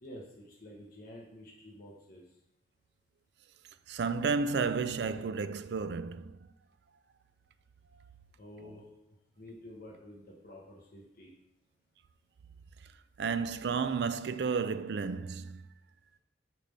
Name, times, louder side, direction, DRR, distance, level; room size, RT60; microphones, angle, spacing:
voice 1, 0.0-2.2 8.4-8.9 9.4-11.3, left 1 dB, 50° left, 1.1 m, -49 dB
voice 2, 3.9-6.4 13.2-15.6, right 5 dB, 65° right, 0.4 m, -32 dB
8.8 x 3.4 x 5.4 m
head